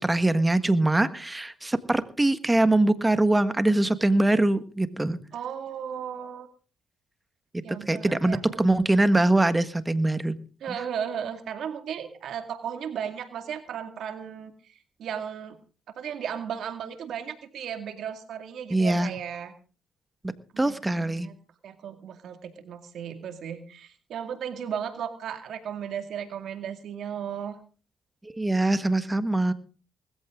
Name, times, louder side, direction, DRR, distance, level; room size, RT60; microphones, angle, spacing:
voice 1, 0.0-5.2 7.7-10.4 18.7-19.1 20.2-21.3 28.2-29.5, right 2 dB, 15° right, 12 dB, 1.5 m, -23 dB
voice 2, 5.3-6.5 7.6-8.6 10.6-15.6 16.0-19.5 20.5-21.3 21.6-27.6, right 8 dB, 70° right, 7 dB, 2.2 m, -35 dB
20.0 x 14.5 x 3.8 m, 0.37 s
cardioid pair, 90°, 0 cm